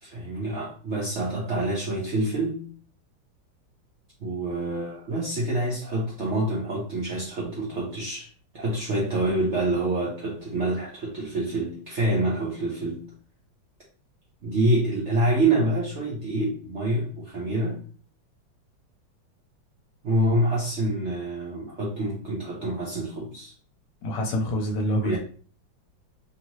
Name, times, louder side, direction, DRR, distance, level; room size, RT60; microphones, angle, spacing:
voice 1, 0.0-2.6 4.2-8.3 8.5-13.0 14.4-17.8 20.0-23.5 25.0-25.2, right 1 dB, 60° right, -5 dB, 0.7 m, -26 dB
voice 2, 24.0-25.2, equal, 70° left, 2 dB, 1.2 m, -26 dB
3.0 x 2.8 x 3.0 m, 0.42 s
omnidirectional pair, 2.1 m